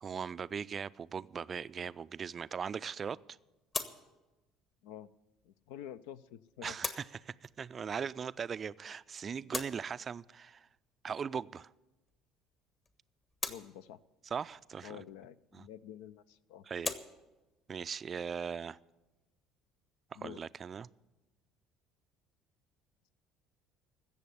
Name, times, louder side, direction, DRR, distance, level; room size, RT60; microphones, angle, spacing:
voice 1, 0.0-3.4 6.6-10.7 11.0-11.7 14.3-15.0 15.5-15.7 16.7-16.9 17.7-18.8 20.1-20.9, right 6 dB, 35° right, 0.4 m, -39 dB
sound 1, 3.7-20.5, left 3 dB, 35° left, 1.3 m, -47 dB
voice 2, 5.4-6.8 13.5-14.0 14.8-16.6 20.1-20.4, left 10 dB, 70° left, 0.4 m, -48 dB
16.0 x 6.9 x 9.7 m
figure-of-eight pair, 60°, 0 cm